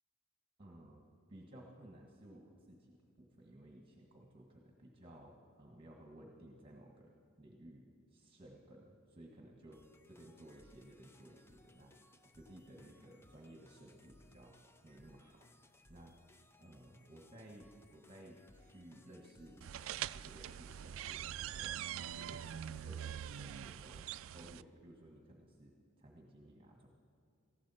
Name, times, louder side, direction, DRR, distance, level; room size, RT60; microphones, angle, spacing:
voice 1, 0.6-1.0 1.3-7.8 8.1-12.0 12.4-14.6 14.8-16.1 16.6-19.6 20.1-24.1 24.3-26.9, right 1 dB, 25° right, 0 dB, 1.7 m, -57 dB
sound 1, 9.7-23.7, left 1 dB, 10° left, 0.5 m, -65 dB
sound 2, 19.6-24.6, right 10 dB, 70° right, 0.3 m, -43 dB
19.0 x 15.0 x 4.3 m, 2.5 s
head